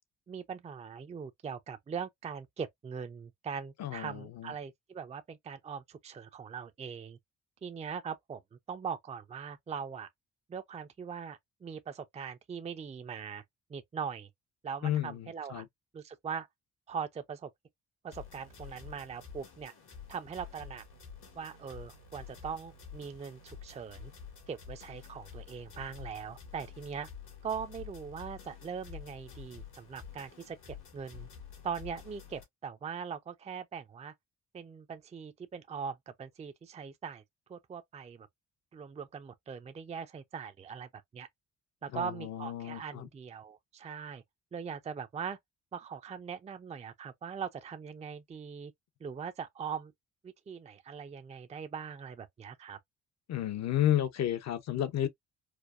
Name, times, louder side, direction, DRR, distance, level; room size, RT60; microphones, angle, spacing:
voice 1, 0.3-7.2 7.6-8.4 8.7-10.1 10.5-13.4 13.7-14.3 14.6-15.6 15.9-16.5 16.9-17.5 18.0-19.7 20.1-20.8 21.3-24.1 24.5-27.1 27.4-31.3 31.6-34.1 34.5-37.2 37.5-38.3 38.7-41.3 41.8-44.2 44.5-45.4 45.7-48.7 49.0-49.9 50.2-52.8, right 6 dB, 20° right, 0.4 m, -41 dB
voice 2, 3.8-4.5 14.8-15.7 41.9-43.1 53.3-55.1, left 12 dB, 60° left, 0.7 m, -32 dB
sound 1, 18.1-32.4, left 7 dB, 85° left, 2.0 m, -49 dB
4.6 x 2.1 x 2.4 m
cardioid pair, 90°, 30 cm